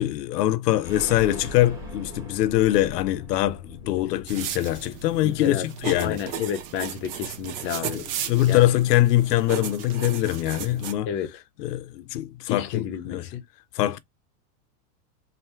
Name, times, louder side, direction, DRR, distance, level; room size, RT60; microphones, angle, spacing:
voice 1, 0.0-6.2 7.9-11.1 11.6-13.2 13.8-14.0, left 14 dB, 80° left, 0.7 m, -23 dB
sound 1, 0.8-6.5 6.8-6.9 7.2-7.3, left 1 dB, 5° right, 1.6 m, -41 dB
sound 2, 4.3-10.9, right 9 dB, 45° right, 0.7 m, -35 dB
voice 2, 5.2-5.7 6.0-8.0 8.5-8.6 11.1-11.4 12.5-13.4, left 9 dB, 25° left, 0.6 m, -31 dB
3.2 x 2.7 x 4.3 m
supercardioid pair, 150°, 47 cm